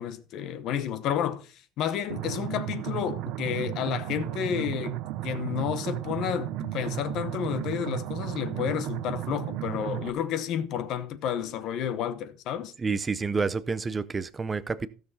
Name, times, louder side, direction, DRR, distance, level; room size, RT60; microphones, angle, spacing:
voice 1, 0.0-5.0 5.2-12.7, left 9 dB, 45° left, 1.0 m, -31 dB
sound 1, 2.1-10.1, right 15 dB, 50° right, 0.7 m, -34 dB
voice 2, 12.8-14.9, right 4 dB, 15° right, 0.5 m, -29 dB
15.5 x 6.8 x 4.1 m
cardioid pair, 180°, 0 cm